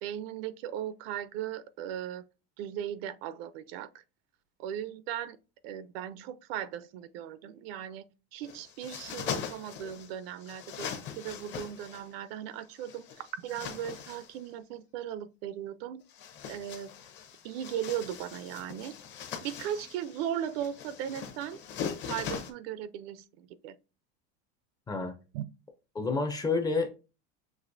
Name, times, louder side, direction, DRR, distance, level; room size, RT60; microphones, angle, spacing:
voice 1, 0.0-2.3 2.6-3.9 4.6-5.4 5.6-8.0 8.3-16.0 16.4-16.9 17.4-18.9 19.4-21.6 22.1-23.8 25.3-25.4, right 10 dB, 70° right, 0.6 m, -37 dB
sound 1, 8.4-10.1 10.4-12.1 12.8-14.4 16.0-22.5, left 7 dB, 35° left, 0.8 m, -41 dB
voice 2, 24.9-25.2 25.9-26.9, left 4 dB, 10° left, 0.5 m, -29 dB
6.1 x 2.9 x 2.6 m
cardioid pair, 155°, 31 cm